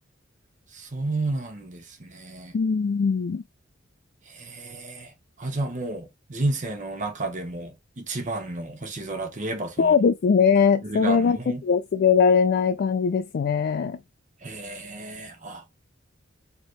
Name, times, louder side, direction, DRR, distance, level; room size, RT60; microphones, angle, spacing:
voice 1, 0.7-2.6 4.3-5.1 5.4-9.9 10.8-11.6 14.4-15.6, right 2 dB, 40° right, 0.9 m, -32 dB
voice 2, 2.5-3.4 9.8-11.4 11.6-14.0, left 6 dB, 55° left, 0.3 m, -21 dB
4.5 x 2.9 x 3.1 m
head